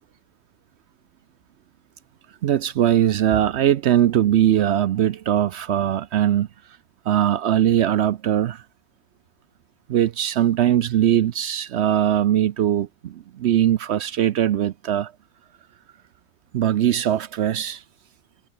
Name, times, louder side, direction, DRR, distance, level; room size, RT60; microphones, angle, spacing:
voice 1, 2.4-6.5 7.1-8.6 9.9-15.1 16.5-17.8, right 11 dB, 75° right, 0.6 m, -20 dB
omnidirectional pair, 1.8 m